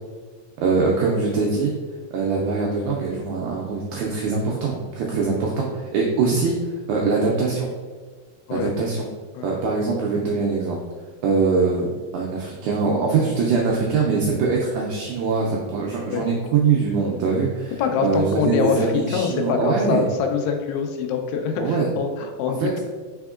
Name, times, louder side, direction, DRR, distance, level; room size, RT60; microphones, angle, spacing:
voice 1, 0.6-1.7 2.1-6.5 6.9-7.7 8.5-9.0 9.4-10.8 11.2-17.7 18.0-20.1 21.6-21.9 22.6-22.7, right 4 dB, 85° right, -2 dB, 1.7 m, -22 dB
voice 2, 17.8-22.8, left 6 dB, 85° left, 4 dB, 2.2 m, -24 dB
4.4 x 4.2 x 2.3 m, 1.5 s
omnidirectional pair, 4.0 m